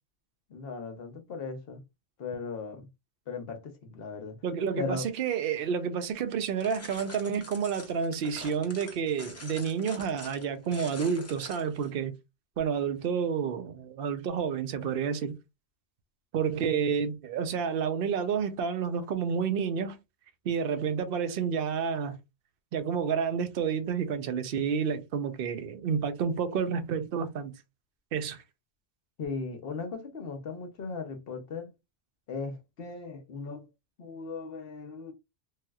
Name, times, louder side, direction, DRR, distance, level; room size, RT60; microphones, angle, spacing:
voice 1, 0.5-1.8 2.2-2.9 3.3-4.4 4.8-5.0 29.2-31.7 32.3-33.7 34.0-35.1, left 4 dB, 60° left, 0.9 m, -37 dB
voice 2, 4.4-12.1 12.6-15.3 16.3-20.0 20.4-22.2 22.7-27.5 28.1-28.4, right 6 dB, 60° right, 0.8 m, -30 dB
sound 1, 6.6-11.9, left 2 dB, 20° left, 0.5 m, -46 dB
3.2 x 2.7 x 2.3 m
omnidirectional pair, 1.2 m